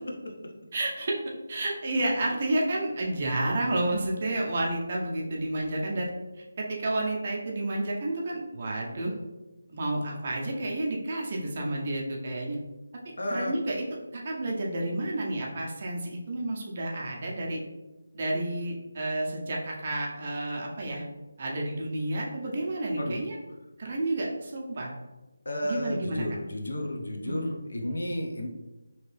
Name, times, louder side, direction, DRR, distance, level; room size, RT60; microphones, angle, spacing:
voice 1, 0.7-1.2 1.5-6.1 6.4-9.2 9.7-12.6 13.3-13.8 14.1-17.6 18.1-21.0 21.4-23.4 23.8-24.9 25.6-26.2 27.2-27.5, right 1 dB, 30° right, -2 dB, 0.5 m, -30 dB
voice 2, 13.2-13.5 23.0-23.1 25.5-28.5, left 1 dB, 70° left, 0 dB, 0.7 m, -32 dB
2.9 x 2.8 x 3.1 m, 1.1 s
figure-of-eight pair, 175°, 0 cm